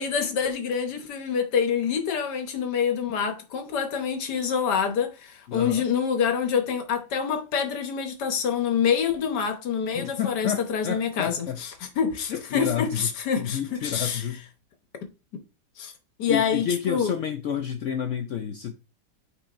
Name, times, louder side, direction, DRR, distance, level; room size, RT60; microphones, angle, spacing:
voice 1, 0.0-14.2 15.8-15.9 16.2-17.1, left 7 dB, 70° left, 1.6 m, -26 dB
voice 2, 5.5-5.8 9.9-11.6 12.3-13.1 13.4-14.4 16.3-18.7, left 9 dB, 90° left, 0.6 m, -29 dB
8.6 x 4.7 x 2.5 m
omnidirectional pair, 1.9 m